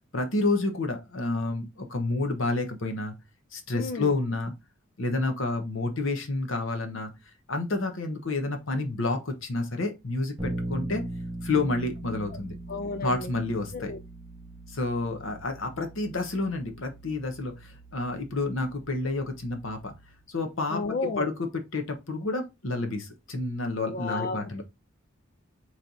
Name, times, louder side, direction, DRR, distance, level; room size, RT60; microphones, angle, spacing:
voice 1, 0.1-3.1 3.5-4.5 5.0-7.1 7.5-11.0 11.4-12.6 13.0-13.9 14.7-19.9 20.3-20.8 21.2-24.6, left 2 dB, 70° left, 1.0 m, -29 dB
voice 2, 3.7-4.1 12.7-13.3 13.7-14.0 20.7-21.3 23.9-24.6, left 3 dB, 45° left, 0.4 m, -32 dB
Bass guitar, 10.4-20.2, right 2 dB, 5° right, 1.5 m, -40 dB
4.2 x 3.2 x 3.9 m
head